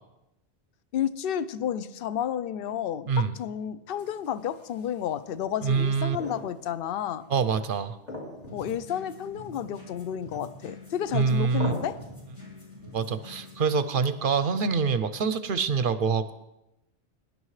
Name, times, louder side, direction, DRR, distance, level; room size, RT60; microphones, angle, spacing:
voice 1, 0.9-7.2 8.5-12.0, left 9 dB, 60° left, 14 dB, 0.7 m, -31 dB
sound 1, 4.0-5.1 5.9-6.9 7.2-7.3 8.1-8.8 9.1-9.2 10.3-10.8 11.6-12.2 13.8-14.3, left 1 dB, 40° left, 2.3 m, -40 dB
voice 2, 5.6-6.2 7.3-7.9 11.1-11.7 12.9-16.3, right 5 dB, 60° right, 12 dB, 0.7 m, -25 dB
sound 2, 8.4-13.7, left 2 dB, 85° left, 3.7 m, -46 dB
21.5 x 10.5 x 3.2 m, 0.91 s
omnidirectional pair, 1.1 m